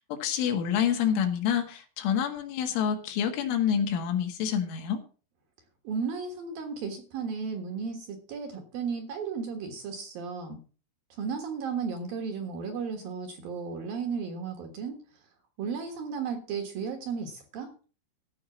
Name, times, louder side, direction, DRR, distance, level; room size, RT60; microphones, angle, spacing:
voice 1, 0.0-5.0, left 8 dB, 80° left, 5 dB, 4.1 m, -27 dB
voice 2, 5.8-10.6 11.1-15.0 15.6-17.7, right 5 dB, 60° right, 5 dB, 2.7 m, -34 dB
14.5 x 5.5 x 7.1 m, 0.38 s
omnidirectional pair, 5.6 m